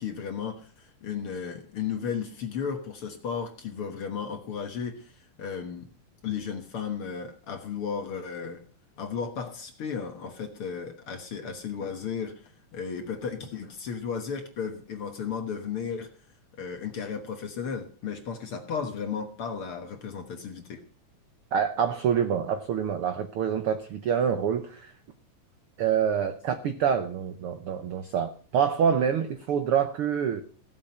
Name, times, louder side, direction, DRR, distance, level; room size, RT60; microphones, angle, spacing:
voice 1, 0.0-5.1 5.4-5.9 6.2-8.6 9.0-12.4 12.7-16.1 16.6-20.8, left 6 dB, 55° left, 1.8 m, -34 dB
voice 2, 21.5-24.9 25.8-30.4, right 7 dB, 75° right, 1.3 m, -26 dB
16.5 x 7.6 x 5.6 m
omnidirectional pair, 3.7 m